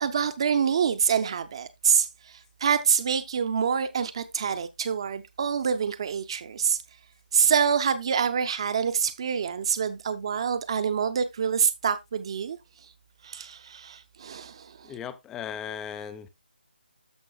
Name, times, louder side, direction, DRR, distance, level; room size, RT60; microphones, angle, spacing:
voice 1, 0.0-6.8 7.3-12.6 13.2-14.9, right 7 dB, 30° right, 0.7 m, -26 dB
voice 2, 14.9-16.3, left 8 dB, 5° left, 0.4 m, -37 dB
13.5 x 5.4 x 2.3 m
figure-of-eight pair, 155°, 6 cm